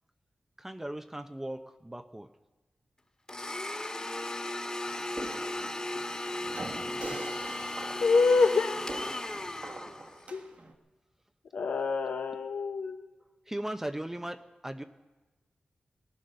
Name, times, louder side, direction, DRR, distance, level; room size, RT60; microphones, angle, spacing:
voice 1, 0.6-2.3 7.1-7.2 13.5-14.8, right 1 dB, 15° right, 7 dB, 0.6 m, -38 dB
Domestic sounds home sounds, 3.3-10.3, left 1 dB, 25° left, 1.7 m, -36 dB
sound 1, 4.8-10.7, right 2 dB, 55° right, 1.4 m, -44 dB
voice 2, 4.9-5.4 5.9-6.0 6.9-7.2 8.0-8.9 10.3-10.4 11.5-12.9, left 4 dB, 80° left, 5 dB, 0.7 m, -27 dB
18.5 x 11.5 x 6.7 m, 1.2 s
cardioid pair, 60°, 3 cm